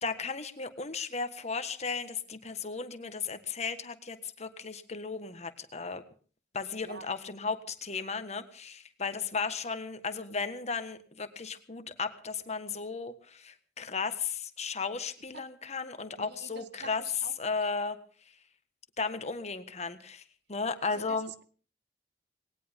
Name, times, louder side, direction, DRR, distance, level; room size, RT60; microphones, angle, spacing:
voice 1, 0.0-6.0 6.5-17.0 17.4-18.0 19.0-20.2 20.5-21.3, left 4 dB, 40° left, 10 dB, 1.5 m, -35 dB
voice 2, 16.2-17.5 20.9-21.4, right 4 dB, 70° right, 13 dB, 1.1 m, -47 dB
20.0 x 18.0 x 3.7 m, 0.42 s
head